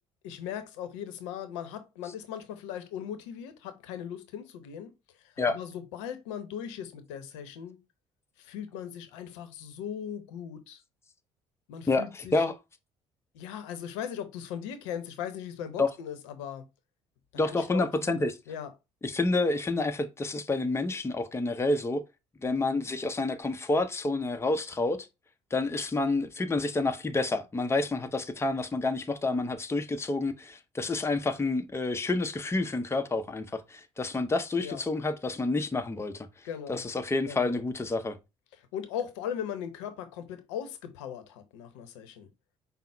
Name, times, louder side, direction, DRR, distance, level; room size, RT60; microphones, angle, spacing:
voice 1, 0.2-4.9 5.2-7.8 8.4-10.8 11.7-12.5 13.3-16.7 17.4-18.2 18.5-18.7 34.6-34.8 36.4-36.8 37.3-37.6 38.7-42.3, left 9 dB, 80° left, 0.8 m, -38 dB
voice 2, 11.9-12.5 15.8-15.9 17.4-18.3 19.0-22.0 22.4-25.1 25.5-36.3 36.7-38.2, left 3 dB, 15° left, 0.7 m, -29 dB
5.5 x 2.0 x 4.4 m
hypercardioid pair, 55°, 15 cm